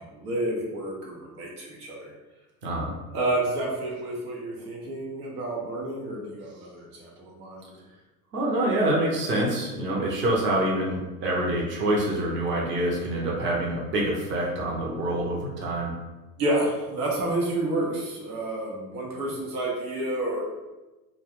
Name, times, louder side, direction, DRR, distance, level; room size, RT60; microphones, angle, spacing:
voice 1, 0.0-2.1 3.1-7.7 16.4-20.4, right 1 dB, 75° right, -3 dB, 1.0 m, -30 dB
voice 2, 2.6-2.9 8.3-15.9, right 1 dB, 25° right, -3 dB, 0.7 m, -26 dB
2.3 x 2.2 x 3.5 m, 1.1 s
hypercardioid pair, 85°, 46 cm